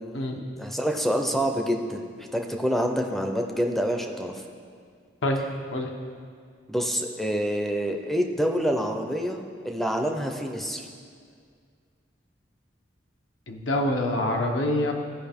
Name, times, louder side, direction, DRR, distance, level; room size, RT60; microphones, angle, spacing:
voice 1, 0.0-4.4 6.7-9.4 9.6-10.9, equal, ahead, 3 dB, 0.5 m, -27 dB
voice 2, 13.5-14.9, left 1 dB, 85° left, 2 dB, 0.9 m, -25 dB
14.5 x 5.0 x 3.5 m, 2.1 s
head